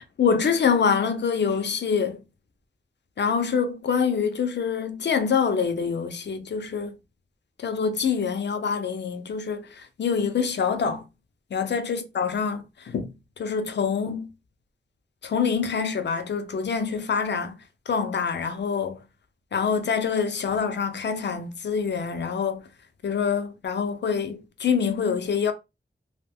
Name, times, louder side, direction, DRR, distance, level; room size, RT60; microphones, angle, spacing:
voice 1, 0.2-2.2 3.2-6.9 7.6-9.7 10.0-11.0 11.5-13.1 13.4-14.3 15.2-17.6 17.9-19.0 19.5-22.6 23.0-25.5, left 6 dB, 75° left, 0.6 m, -25 dB
2.5 x 2.3 x 3.4 m
cardioid pair, 60°, 18 cm